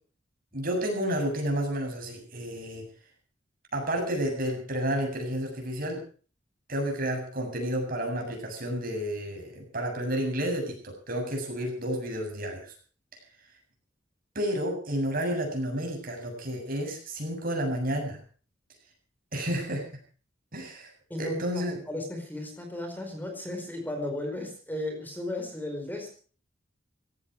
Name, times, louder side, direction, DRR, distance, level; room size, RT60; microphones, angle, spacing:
voice 1, 0.5-2.8 3.7-6.0 6.7-12.7 14.3-18.2 19.3-19.9 20.5-20.9 21.2-21.8, equal, 50° right, 2 dB, 7.4 m, -31 dB
voice 2, 21.1-26.1, left 1 dB, 10° left, 4 dB, 4.6 m, -35 dB
17.5 x 17.0 x 4.6 m, 0.41 s
head